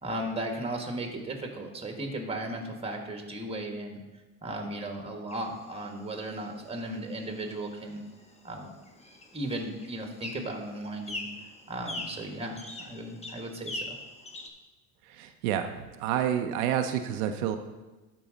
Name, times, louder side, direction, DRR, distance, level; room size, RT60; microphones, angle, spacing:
voice 1, 0.0-4.0 4.4-8.0 8.4-8.8 9.3-11.3 11.7-14.0, right 1 dB, 15° right, 3 dB, 1.5 m, -36 dB
sound 1, 5.3-14.5, left 1 dB, 15° left, 1.0 m, -43 dB
voice 2, 15.1-15.7 16.0-17.6, right 10 dB, 90° right, 6 dB, 0.7 m, -28 dB
12.0 x 4.7 x 3.9 m, 1.1 s
supercardioid pair, 95°, 41 cm